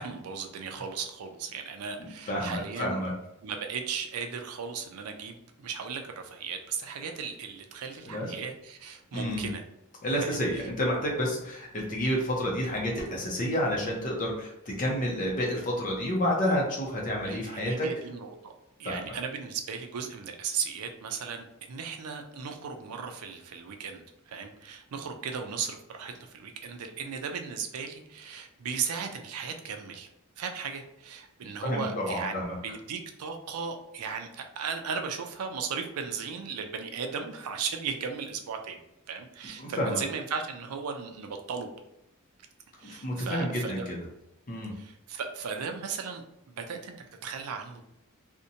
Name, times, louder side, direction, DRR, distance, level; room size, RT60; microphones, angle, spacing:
voice 1, 0.0-3.0 3.4-9.6 10.2-10.4 17.2-18.5 18.8-30.1 30.4-38.8 39.1-41.7 42.8-43.9 44.7-47.8, right 6 dB, 85° right, 5 dB, 0.4 m, -36 dB
voice 2, 2.0-3.1 8.1-8.3 9.1-9.5 10.0-17.9 18.8-19.2 31.6-32.6 39.6-40.0 42.8-44.0 44.5-44.7, equal, 40° left, -1 dB, 0.5 m, -30 dB
2.6 x 2.1 x 2.7 m, 0.87 s
head